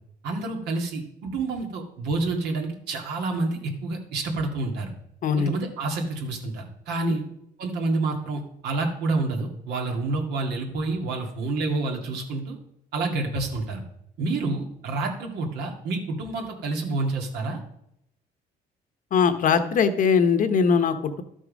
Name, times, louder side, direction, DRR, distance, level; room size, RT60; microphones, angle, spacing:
voice 1, 0.2-4.9 5.4-7.2 7.6-12.6 12.9-13.8 14.2-17.6, right 3 dB, 80° right, 2 dB, 2.3 m, -28 dB
voice 2, 5.2-5.6 7.0-7.1 19.1-21.2, left 6 dB, 50° left, 9 dB, 1.1 m, -21 dB
12.5 x 6.3 x 5.3 m, 0.76 s
cardioid pair, 110°, 17 cm